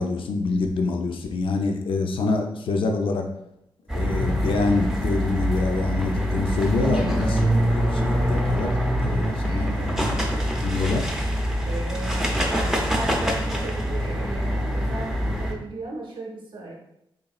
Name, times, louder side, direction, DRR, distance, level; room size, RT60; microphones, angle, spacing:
voice 1, 0.0-3.3 3.9-8.8 9.0-10.2 10.6-11.0, left 3 dB, 70° left, 3 dB, 0.4 m, -26 dB
sound 1, 3.9-15.5, equal, 5° right, 0.4 m, -24 dB
voice 2, 9.4-10.3 11.6-16.7, right 2 dB, 65° right, -1 dB, 0.6 m, -36 dB
4.0 x 3.5 x 2.3 m, 0.82 s
wide cardioid pair, 175°, 9 cm